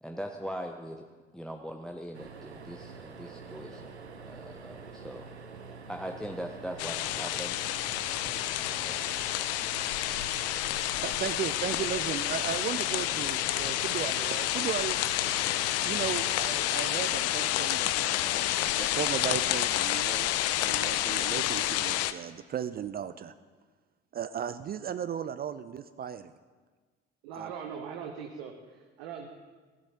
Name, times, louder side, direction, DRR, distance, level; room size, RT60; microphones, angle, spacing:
voice 1, 0.0-1.0 1.3-3.9 4.2-5.3 5.9-7.6 8.2-8.5 8.8-9.1, equal, ahead, 4 dB, 0.7 m, -40 dB
sound 1, 2.1-17.4 19.1-19.3 19.6-19.7, right 4 dB, 90° right, 0.6 m, -46 dB
sound 2, 6.8-22.1, left 14 dB, 50° left, 0.5 m, -29 dB
voice 2, 11.0-15.0 15.8-23.3 24.1-26.3 27.4-27.5, right 9 dB, 30° right, 12 dB, 0.4 m, -36 dB
voice 3, 27.2-29.3, right 7 dB, 65° right, 3 dB, 1.0 m, -41 dB
15.5 x 10.5 x 2.9 m, 1.4 s
figure-of-eight pair, 55°, 32 cm